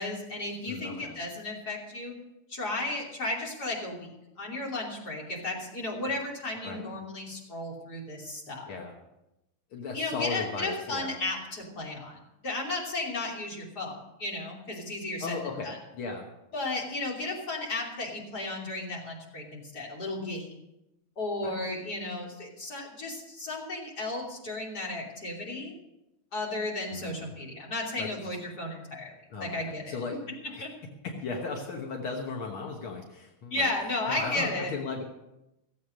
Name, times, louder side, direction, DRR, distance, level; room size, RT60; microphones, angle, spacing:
voice 1, 0.0-2.1 2.5-4.1 4.4-8.7 9.9-12.2 12.4-15.4 15.6-15.8 16.5-20.5 21.2-25.7 26.3-29.1 29.4-30.0 30.6-30.7 33.5-34.7, left 2 dB, 50° left, -2 dB, 3.5 m, -34 dB
voice 2, 0.7-1.2 6.6-6.9 8.7-9.0 9.7-11.2 15.2-16.3 21.4-21.6 26.9-27.2 28.0-28.4 29.3-30.2 30.5-30.7 31.0-33.7 34.1-35.0, left 4 dB, 80° left, 1 dB, 2.2 m, -36 dB
16.0 x 8.0 x 6.4 m, 0.91 s
omnidirectional pair, 2.3 m